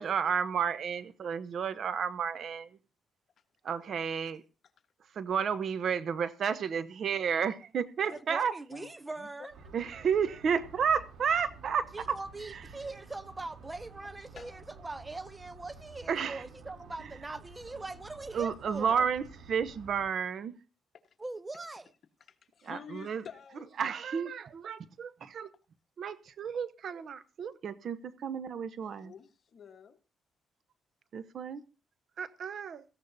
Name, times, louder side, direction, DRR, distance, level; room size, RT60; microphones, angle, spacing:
voice 1, 0.0-2.7 3.6-4.4 5.1-8.5 9.7-12.2 12.4-12.7 16.1-16.4 18.3-20.6 22.6-23.2 23.8-25.5 26.0-29.1 31.1-31.6 32.2-32.8, right 7 dB, 60° right, 1.0 m, -32 dB
voice 2, 8.3-9.5 11.9-19.1 21.2-21.9, right 2 dB, 20° right, 0.8 m, -42 dB
voice 3, 9.2-9.7 14.3-14.6 17.9-18.0 22.5-23.6 28.8-30.0, left 7 dB, 55° left, 1.4 m, -49 dB
sound 1, 9.5-20.1, right 3 dB, 80° right, 3.4 m, -52 dB
17.5 x 14.5 x 2.8 m
cardioid pair, 90°, 0 cm